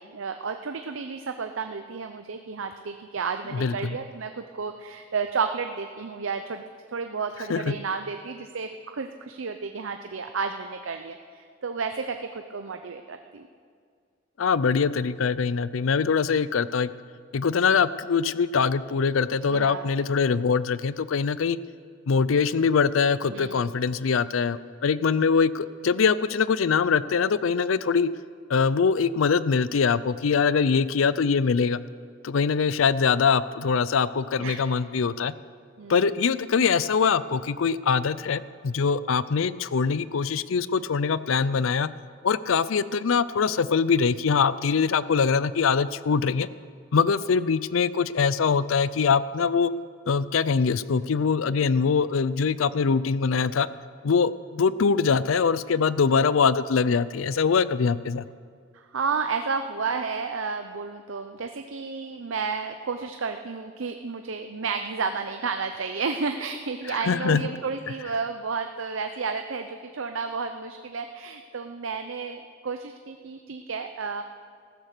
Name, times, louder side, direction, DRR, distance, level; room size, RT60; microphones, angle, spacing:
voice 1, 0.0-6.6 6.9-13.5 19.5-19.9 23.3-23.7 34.4-34.7 35.8-36.0 58.7-74.2, right 5 dB, 70° right, 7 dB, 0.7 m, -32 dB
voice 2, 3.5-4.0 7.5-7.8 14.4-16.9 17.3-21.6 22.1-28.1 28.5-31.8 32.2-35.3 35.9-41.9 42.2-46.5 46.9-49.7 50.1-53.7 54.0-58.3 66.9-67.5, left 5 dB, 80° left, 17 dB, 0.5 m, -23 dB
15.0 x 12.5 x 6.7 m, 2.1 s
head